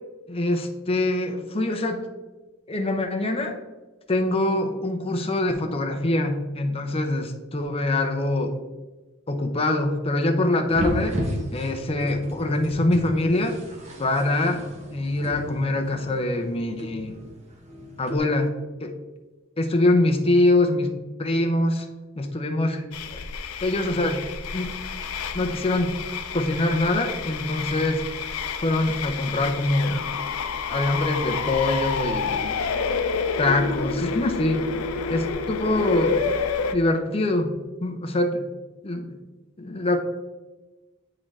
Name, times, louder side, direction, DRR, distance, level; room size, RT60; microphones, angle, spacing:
voice 1, 0.3-2.1 2.7-3.6 4.1-8.5 9.3-11.2 11.5-13.6 14.0-14.6 14.9-17.2 18.0-18.5 18.8-18.9 19.6-21.9 22.2-22.8 23.1-23.2 23.6-24.2 24.5-24.7 25.3-25.9 26.3-28.0 28.6-30.1 30.7-32.6 33.4-34.6 35.1-36.3 36.7-37.5 37.8-38.4 38.8-39.1 39.6-40.0, left 2 dB, 30° left, 4 dB, 0.6 m, -24 dB
sound 1, 10.7-18.2, equal, 35° right, 1.0 m, -33 dB
sound 2, 22.9-36.7, left 5 dB, 90° left, 0.4 m, -29 dB
8.6 x 3.8 x 3.2 m, 1.2 s
head